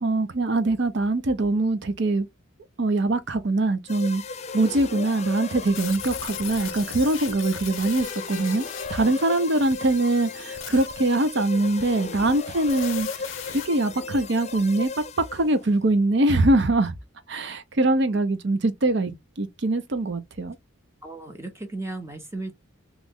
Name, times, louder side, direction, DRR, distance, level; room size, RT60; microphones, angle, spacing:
voice 1, 0.0-2.3 2.8-4.2 4.5-8.6 8.9-14.9 15.3-16.9 17.3-19.1 19.4-20.6, right 2 dB, 60° right, 0.6 m, -23 dB
sound 1, 3.9-15.6, left 4 dB, 35° left, 0.4 m, -36 dB
sound 2, 5.7-13.7, left 9 dB, 80° left, 0.7 m, -39 dB
voice 2, 21.0-22.5, right 2 dB, 15° right, 0.8 m, -35 dB
3.1 x 2.4 x 3.5 m
head